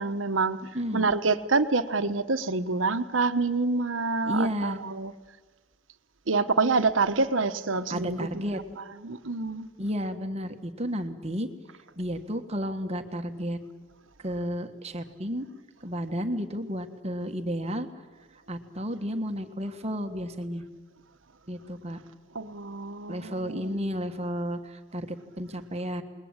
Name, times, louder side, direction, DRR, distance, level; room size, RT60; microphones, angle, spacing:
voice 1, 0.0-0.6 0.9-5.1 6.3-8.6 9.0-9.7 22.3-23.8, right 3 dB, 80° right, 11 dB, 1.2 m, -27 dB
voice 2, 0.7-1.1 4.2-4.8 7.9-8.6 9.8-11.5 12.0-13.6 14.2-15.5 15.8-17.9 18.5-20.6 21.5-22.0 23.1-26.0, equal, 35° right, 6 dB, 1.5 m, -32 dB
28.5 x 21.0 x 8.9 m, 1.3 s
head